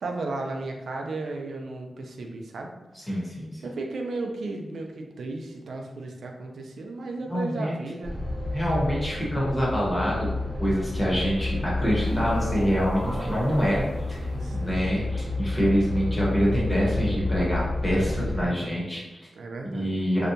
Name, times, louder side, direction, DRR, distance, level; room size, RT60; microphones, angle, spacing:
voice 1, 0.0-2.7 3.6-8.1 14.1-14.8 18.2-18.9 19.4-20.0, right 2 dB, 90° right, 2 dB, 0.3 m, -35 dB
voice 2, 2.9-3.6 7.3-7.8 8.5-10.3 10.6-14.2 14.5-19.2 19.7-20.3, equal, 20° left, -6 dB, 0.9 m, -26 dB
sound 1, 8.0-18.5, left 2 dB, 15° right, 0.6 m, -30 dB
sound 2, 12.0-14.4, equal, 40° right, 1.0 m, -35 dB
2.7 x 2.1 x 2.6 m, 1.1 s
wide cardioid pair, 120°, 0 cm